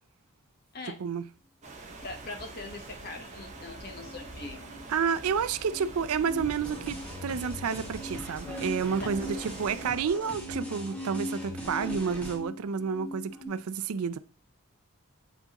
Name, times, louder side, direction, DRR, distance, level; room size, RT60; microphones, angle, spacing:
voice 1, 0.9-1.3 4.9-14.2, right 6 dB, 80° right, 0.4 m, -30 dB
sound 1, 1.6-9.9, right 2 dB, 30° right, 1.1 m, -45 dB
voice 2, 2.0-4.6 9.0-9.1, left 3 dB, 45° left, 1.0 m, -41 dB
sound 2, 3.8-13.5, equal, 10° right, 1.9 m, -41 dB
sound 3, 6.4-12.4, left 1 dB, 5° left, 1.2 m, -42 dB
7.8 x 4.6 x 2.9 m
head